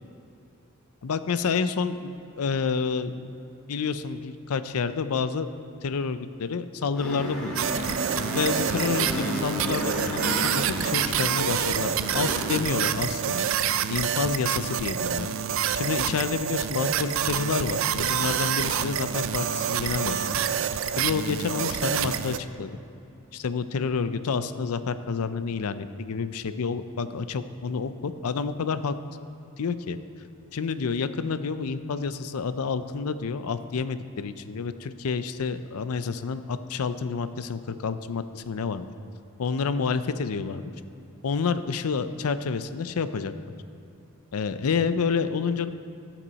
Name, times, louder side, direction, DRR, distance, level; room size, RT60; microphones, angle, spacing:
voice 1, 1.0-2.1 2.4-3.3 3.7-5.5 5.8-7.7 8.3-13.5 13.9-15.3 15.7-20.2 21.0-22.8 23.3-28.9 29.6-30.0 30.5-38.9 39.4-40.6 41.2-43.3 44.3-45.7, left 5 dB, 85° left, 12 dB, 0.5 m, -29 dB
sound 1, 6.9-12.6, equal, 5° left, 1.9 m, -32 dB
sound 2, 7.6-22.4, right 8 dB, 65° right, 0.4 m, -27 dB
17.5 x 6.0 x 4.1 m, 2.8 s
head